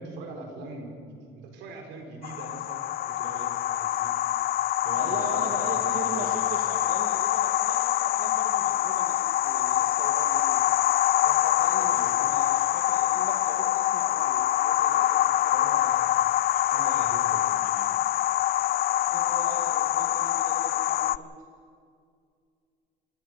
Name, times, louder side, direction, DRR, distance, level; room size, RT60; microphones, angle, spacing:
voice 1, 0.0-4.1 4.8-6.5 11.8-12.4 15.5-16.1 16.7-17.9, right 3 dB, 80° right, 2 dB, 4.7 m, -42 dB
sound 1, 2.2-21.2, left 13 dB, 55° left, 0.5 m, -25 dB
voice 2, 4.9-10.7 11.2-15.7 19.1-21.4, right 4 dB, 45° right, 1 dB, 2.5 m, -41 dB
28.5 x 14.0 x 6.7 m, 2.3 s
cardioid pair, 125°, 18 cm